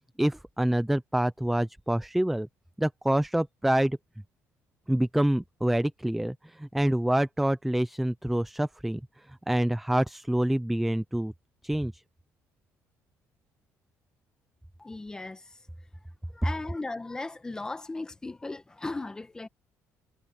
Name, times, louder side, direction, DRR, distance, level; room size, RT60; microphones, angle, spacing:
voice 1, 0.2-2.5 2.8-4.0 4.9-9.0 9.3-11.3 11.6-12.0, right 1 dB, 5° right, 0.5 m, -26 dB
voice 2, 14.8-19.5, left 2 dB, 15° left, 1.5 m, -38 dB
cardioid pair, 140°, 5 cm